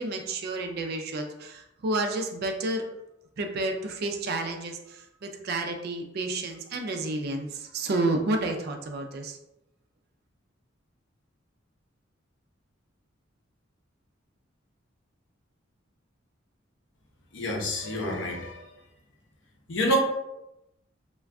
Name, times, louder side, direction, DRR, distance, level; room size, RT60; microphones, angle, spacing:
voice 1, 0.0-2.9 3.4-9.4, right 2 dB, 55° right, 5 dB, 0.4 m, -30 dB
voice 2, 17.3-18.6 19.7-20.0, equal, 65° left, -1 dB, 0.7 m, -28 dB
2.4 x 2.2 x 3.4 m, 0.87 s
head